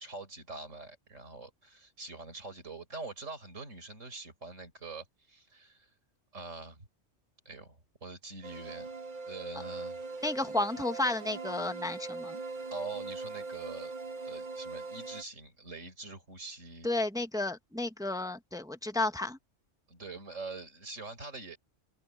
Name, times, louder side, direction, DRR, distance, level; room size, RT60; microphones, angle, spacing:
voice 1, 0.0-5.9 6.3-6.9 7.4-8.9 9.3-10.0 12.7-13.9 14.2-16.9 19.9-21.6, right 3 dB, 80° right, 4.8 m, -44 dB
sound 1, 8.4-15.2, right 3 dB, 45° right, 1.2 m, -41 dB
voice 2, 10.2-12.4 16.8-19.4, left 2 dB, 5° right, 0.9 m, -32 dB
omnidirectional pair, 1.3 m